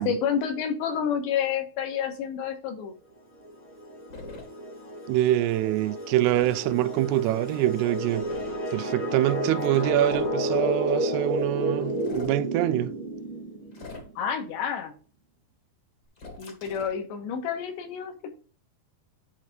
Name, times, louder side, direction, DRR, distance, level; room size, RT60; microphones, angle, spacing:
voice 1, 0.0-2.9 14.2-14.9 16.4-18.3, left 8 dB, 85° left, 3.5 m, -29 dB
sound 1, 3.4-14.0, right 1 dB, 20° left, 0.8 m, -31 dB
sound 2, 4.1-4.5 6.3-6.6 8.2-8.6 9.6-10.4 11.9-12.4 13.7-14.3 16.2-17.0, left 2 dB, 55° left, 1.1 m, -43 dB
voice 2, 5.1-8.3 8.7-12.9, right 14 dB, 85° right, 2.5 m, -25 dB
10.5 x 3.5 x 5.1 m
omnidirectional pair, 4.9 m